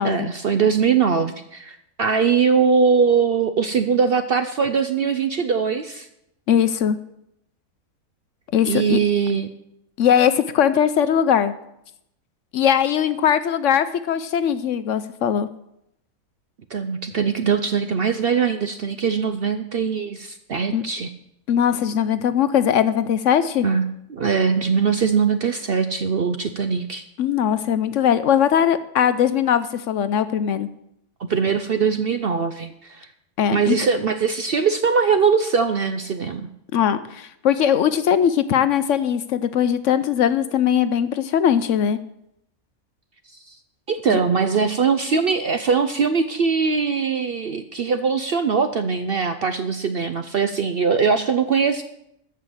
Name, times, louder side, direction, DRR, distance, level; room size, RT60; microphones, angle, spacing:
voice 1, 0.0-6.1 8.6-9.5 16.7-21.1 23.6-23.8 24.1-27.0 31.3-33.1 33.5-36.5 43.3-43.6 43.9-51.8, right 6 dB, 60° right, 9 dB, 0.6 m, -21 dB
voice 2, 6.5-7.0 8.5-9.0 10.0-11.5 12.5-15.5 20.7-20.8 21.5-23.7 27.2-30.7 33.4-33.8 36.7-42.0 44.1-44.2, left 9 dB, 65° left, 13 dB, 0.9 m, -20 dB
13.5 x 5.7 x 7.7 m, 0.80 s
omnidirectional pair, 1.5 m